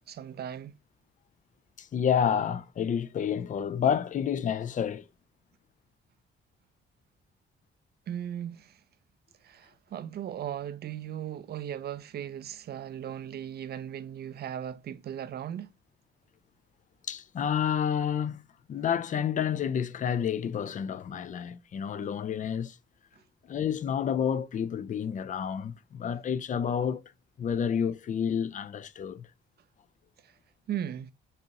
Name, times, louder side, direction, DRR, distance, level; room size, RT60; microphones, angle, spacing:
voice 1, 0.1-0.8 8.1-8.8 9.4-15.7 30.2-30.3 30.7-31.1, right 10 dB, 55° right, 0.5 m, -37 dB
voice 2, 1.8-5.1 17.1-18.4 18.7-22.8 23.4-27.0 27.4-29.3, left 8 dB, 40° left, 0.4 m, -29 dB
6.6 x 2.5 x 2.8 m
cardioid pair, 90°, 20 cm